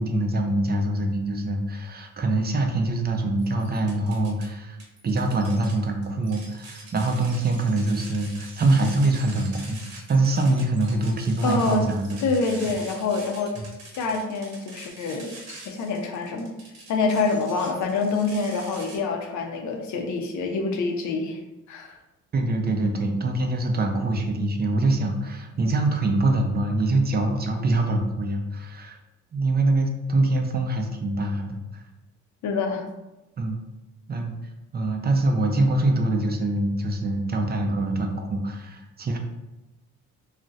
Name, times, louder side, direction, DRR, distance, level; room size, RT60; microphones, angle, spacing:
voice 1, 0.0-4.8 5.0-12.2 13.6-13.7 22.3-29.0 29.3-31.8 33.4-33.6 34.1-34.3 34.7-39.2, right 2 dB, 35° right, 3 dB, 0.5 m, -24 dB
sound 1, 3.4-4.5 4.8-19.0, right 2 dB, 60° right, 1.0 m, -44 dB
voice 2, 11.4-11.9 12.2-13.5 13.9-15.3 15.7-16.5 16.9-21.4 21.7-22.0 32.4-32.9, left 4 dB, 75° left, 3 dB, 0.6 m, -26 dB
2.4 x 2.1 x 3.9 m, 1.0 s
cardioid pair, 90°, 30 cm